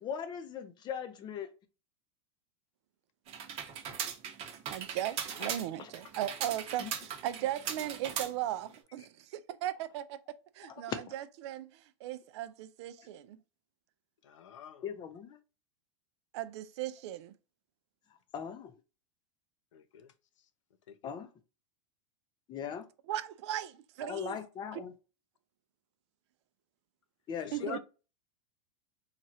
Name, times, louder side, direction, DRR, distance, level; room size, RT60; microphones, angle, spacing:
voice 1, 0.0-1.5 5.4-5.5 5.8-5.9 6.8-6.9 10.6-11.0 13.0-13.1 14.8-15.4 18.3-18.7 21.0-21.3 22.5-22.9 24.0-24.9 27.3-27.8, left 7 dB, 30° left, 0.5 m, -39 dB
sound 1, 3.3-8.8, right 8 dB, 40° right, 0.8 m, -39 dB
voice 2, 4.7-10.2 10.5-13.4 16.3-17.3 23.1-24.4 24.7-24.8 27.5-27.8, right 12 dB, 65° right, 0.4 m, -37 dB
voice 3, 14.2-14.9 19.7-20.1 20.9-21.1 27.4-27.8, left 8 dB, 85° left, 0.5 m, -44 dB
3.0 x 2.4 x 2.7 m
hypercardioid pair, 120°, 16 cm